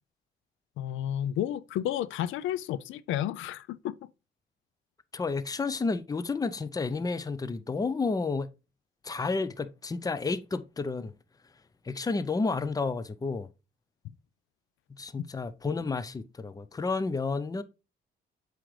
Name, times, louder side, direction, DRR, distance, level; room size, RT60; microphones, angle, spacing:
voice 1, 0.8-4.0, left 11 dB, 80° left, 0.4 m, -31 dB
voice 2, 5.1-8.5 9.0-11.1 11.8-13.5 15.0-17.6, left 4 dB, 20° left, 0.5 m, -31 dB
7.6 x 4.8 x 3.2 m
cardioid pair, 90°, 20 cm